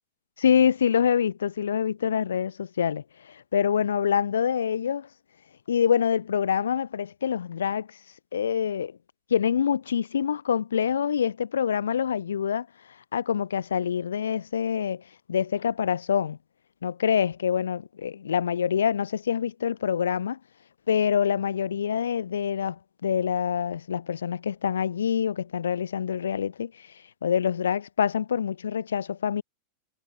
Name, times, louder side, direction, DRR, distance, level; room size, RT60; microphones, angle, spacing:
voice 1, 0.4-5.1 5.7-8.0 8.3-9.0 9.3-15.0 15.3-16.4 16.8-20.4 20.9-29.4, left 8 dB, 65° left, 1.5 m, -26 dB
figure-of-eight pair, 90°, 0 cm